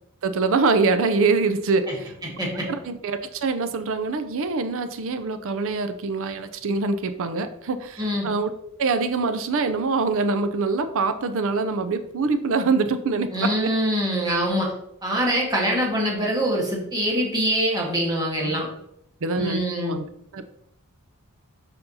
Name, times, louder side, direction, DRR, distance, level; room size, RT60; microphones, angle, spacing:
voice 1, 0.2-2.1 2.8-8.5 8.8-13.7 18.4-18.6 19.2-20.1 20.3-20.4, right 4 dB, 65° right, 10 dB, 0.5 m, -24 dB
voice 2, 2.2-2.7 8.0-8.3 13.3-14.7 15.0-18.7 19.4-20.0, equal, 20° right, -3 dB, 1.5 m, -24 dB
6.8 x 5.3 x 2.8 m, 0.76 s
head